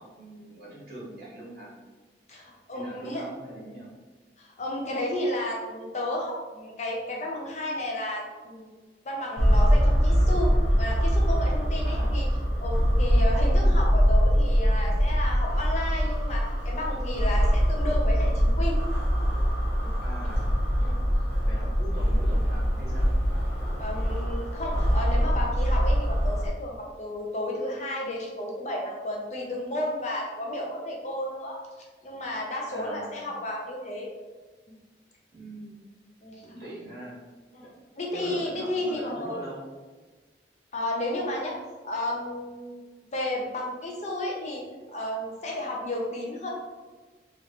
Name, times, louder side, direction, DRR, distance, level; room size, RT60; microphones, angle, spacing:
voice 1, 0.0-1.7 2.7-3.9 11.8-12.2 20.0-20.4 21.4-23.1 32.7-33.3 35.3-35.8 36.4-37.2 37.6-37.7 38.1-39.6, right 1 dB, 55° right, -6 dB, 1.4 m, -42 dB
voice 2, 2.3-3.2 4.4-8.7 9.0-12.3 12.6-18.8 19.8-19.9 20.8-21.0 23.8-31.6 32.0-34.1 34.7-34.8 36.2-36.4 37.5-39.4 40.7-41.6 41.8-42.8 43.1-44.6 44.9-46.5, left 1 dB, 40° left, -2 dB, 0.5 m, -32 dB
sound 1, 9.4-26.5, equal, 80° right, 0.9 m, -23 dB
3.2 x 2.5 x 2.8 m, 1.3 s
head